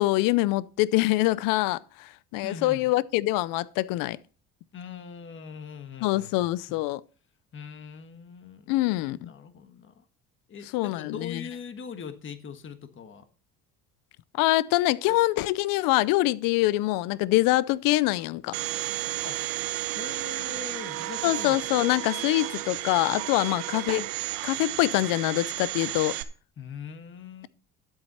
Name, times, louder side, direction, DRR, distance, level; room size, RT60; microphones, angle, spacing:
voice 1, 0.0-4.2 6.0-7.0 8.7-9.3 10.7-11.5 14.3-18.6 21.2-24.1 24.4-26.2, left 18 dB, 85° left, 0.5 m, -25 dB
voice 2, 2.4-2.9 4.7-6.8 7.5-8.7 9.1-10.0 10.5-13.2 15.1-15.2 19.2-19.4 19.9-21.6 26.6-27.5, left 6 dB, 35° left, 1.4 m, -41 dB
Domestic sounds home sounds, 18.5-26.2, right 15 dB, 85° right, 1.0 m, -33 dB
12.0 x 8.1 x 4.2 m
cardioid pair, 110°, 33 cm